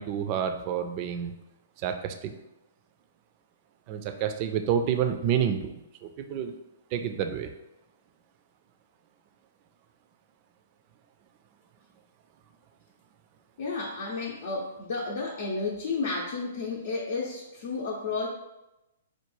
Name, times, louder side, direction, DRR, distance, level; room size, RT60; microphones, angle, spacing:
voice 1, 0.0-1.3 1.8-2.3 3.9-6.6 6.9-7.5, right 8 dB, 40° right, 7 dB, 0.4 m, -29 dB
voice 2, 13.6-18.3, left 3 dB, 60° left, -3 dB, 0.6 m, -32 dB
4.5 x 2.3 x 3.1 m, 0.93 s
hypercardioid pair, 120°, 0 cm